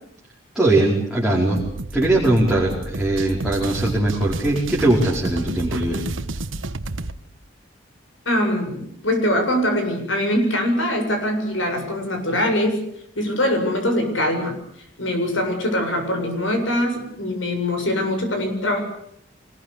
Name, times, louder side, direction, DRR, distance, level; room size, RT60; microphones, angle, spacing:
voice 1, 0.5-1.6 1.9-6.0, right 2 dB, ahead, -6 dB, 4.9 m, -20 dB
sound 1, 1.6-7.2, right 2 dB, 80° right, 1.3 m, -30 dB
voice 2, 8.3-12.8 13.2-14.6 15.0-18.8, left 1 dB, 75° left, 5 dB, 7.6 m, -22 dB
25.5 x 21.0 x 8.5 m, 0.70 s
head